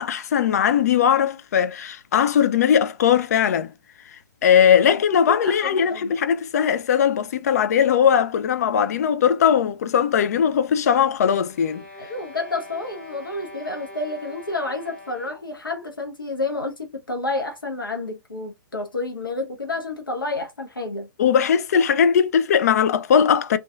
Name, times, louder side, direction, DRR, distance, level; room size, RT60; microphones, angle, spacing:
voice 1, 0.0-3.7 4.1-11.8 21.2-23.6, left 8 dB, 50° left, 0.4 m, -19 dB
voice 2, 5.3-6.1 12.0-21.1, left 2 dB, 85° left, 0.6 m, -30 dB
sound 1, 11.4-15.6, left 1 dB, 10° left, 0.9 m, -42 dB
2.6 x 2.2 x 2.3 m
figure-of-eight pair, 120°, 11 cm